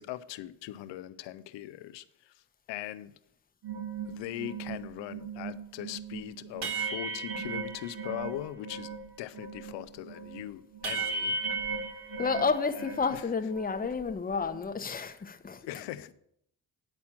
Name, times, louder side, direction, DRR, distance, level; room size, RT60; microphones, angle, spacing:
voice 1, 0.0-2.3 2.7-3.1 4.1-8.9 9.2-11.8 12.7-13.3 14.9-15.2 15.6-16.1, left 13 dB, 85° left, 0.6 m, -40 dB
sound 1, 3.6-9.1 9.3-13.2 13.5-14.7, right 4 dB, 65° right, 1.5 m, -37 dB
voice 2, 12.2-15.6, left 5 dB, 20° left, 0.8 m, -30 dB
9.8 x 4.3 x 7.3 m
supercardioid pair, 65°, 43 cm